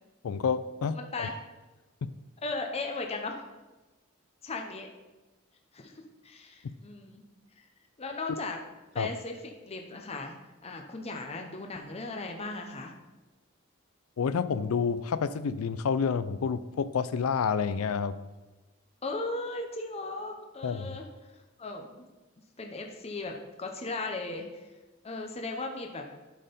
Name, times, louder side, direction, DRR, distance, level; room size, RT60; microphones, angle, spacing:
voice 1, 0.2-1.3 2.0-2.1 6.6-6.7 9.0-9.1 14.2-18.2 20.6-21.0, left 6 dB, 85° left, 14 dB, 0.4 m, -29 dB
voice 2, 0.9-1.3 2.4-3.4 4.4-4.9 5.7-7.2 7.6-7.7 8.0-8.6 8.9-10.3 10.6-12.9 19.0-21.1 21.3-21.9 22.6-24.7 25.0-26.0, left 3 dB, 30° left, 3 dB, 0.8 m, -37 dB
11.5 x 4.4 x 5.2 m, 1.1 s
head